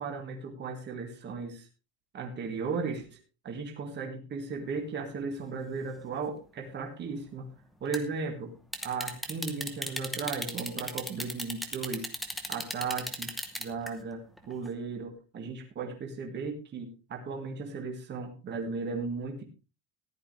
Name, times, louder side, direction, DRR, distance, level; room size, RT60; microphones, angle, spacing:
voice 1, 0.0-1.7 2.1-3.2 3.4-7.5 7.8-8.5 8.8-12.1 12.5-13.3 13.6-19.4, right 4 dB, 20° right, 3 dB, 1.8 m, -36 dB
sound 1, 7.9-8.1 8.7-13.9 14.4-14.7, equal, ahead, 0.8 m, -35 dB
14.5 x 11.5 x 3.3 m, 0.30 s
cardioid pair, 180°, 47 cm